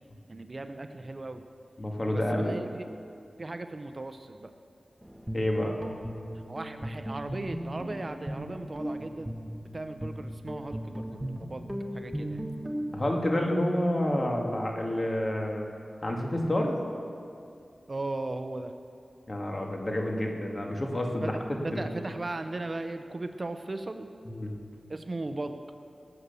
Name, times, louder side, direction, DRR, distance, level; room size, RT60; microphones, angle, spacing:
voice 1, 0.3-1.4 2.1-2.9 3.4-4.5 6.5-9.3 9.7-11.7 11.9-12.5 17.9-18.7 21.2-24.1 24.9-25.6, right 2 dB, 40° right, 8 dB, 0.6 m, -37 dB
voice 2, 1.8-2.6 5.3-5.8 12.9-15.7 16.0-16.8 19.3-21.8 24.3-24.5, left 1 dB, 40° left, 0 dB, 2.0 m, -29 dB
Guitar, 5.0-13.0, equal, 5° right, 1.4 m, -37 dB
18.5 x 8.2 x 6.9 m, 2.5 s
wide cardioid pair, 90°, 0 cm